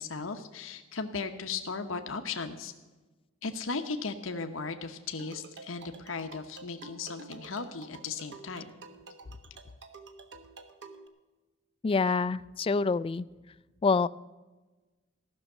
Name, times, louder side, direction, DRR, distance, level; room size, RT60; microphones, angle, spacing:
voice 1, 0.0-2.7 3.4-8.7, left 4 dB, 85° left, 6 dB, 1.0 m, -36 dB
sound 1, 5.2-11.1, right 3 dB, 65° right, 1.3 m, -49 dB
voice 2, 11.8-13.3 13.8-14.1, left 4 dB, 30° left, 18 dB, 0.3 m, -26 dB
15.0 x 6.4 x 9.0 m, 1.2 s
head